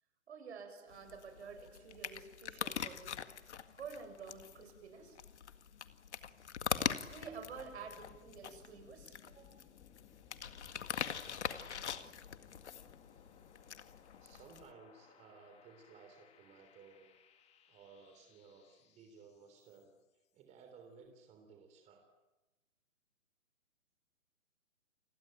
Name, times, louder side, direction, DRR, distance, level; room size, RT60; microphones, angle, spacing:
voice 1, 0.3-3.2 3.7-5.2 7.1-9.7, right 5 dB, 60° right, 7 dB, 7.3 m, -50 dB
sound 1, 0.9-14.7, left 8 dB, 60° left, 2.0 m, -43 dB
sound 2, 6.3-20.1, left 7 dB, 15° left, 2.5 m, -64 dB
voice 2, 11.3-12.2 14.2-17.1 17.7-22.1, right 5 dB, 20° right, 5 dB, 3.4 m, -59 dB
29.5 x 21.5 x 9.2 m, 1.1 s
hypercardioid pair, 140°, 38 cm